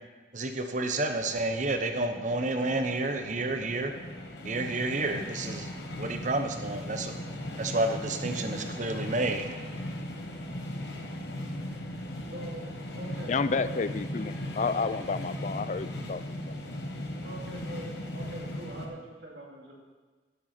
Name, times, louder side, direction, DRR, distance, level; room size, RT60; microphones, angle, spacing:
voice 1, 0.3-3.9 4.4-5.7 6.0-7.1 7.6-9.4, right 2 dB, 40° right, 6 dB, 0.9 m, -30 dB
sound 1, 1.1-18.9, left 1 dB, 60° left, 1.3 m, -38 dB
voice 2, 12.3-12.7 12.9-13.8 17.2-19.8, right 1 dB, 65° right, -2 dB, 2.5 m, -43 dB
voice 3, 13.2-16.5, left 4 dB, 40° left, 14 dB, 0.4 m, -31 dB
11.0 x 7.8 x 5.8 m, 1.4 s
head